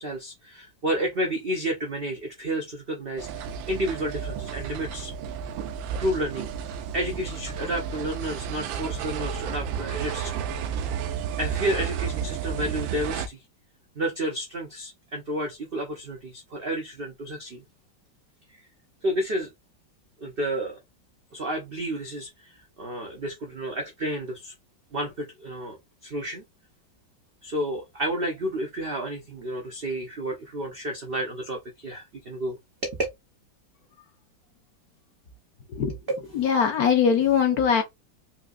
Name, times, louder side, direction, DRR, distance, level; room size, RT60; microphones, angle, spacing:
voice 1, 0.0-5.1 6.0-6.5 6.9-10.5 11.4-13.4 14.0-17.6 18.5-18.6 19.0-19.5 20.2-20.8 21.3-24.5 24.9-25.8 26.0-26.4 27.4-32.6 32.8-33.0 36.1-36.2, right 1 dB, 65° right, 0.5 m, -31 dB
sound 1, 3.2-13.3, right 7 dB, 80° right, 1.3 m, -32 dB
voice 2, 36.3-37.8, left 7 dB, 60° left, 1.1 m, -21 dB
4.3 x 2.7 x 2.4 m
omnidirectional pair, 2.1 m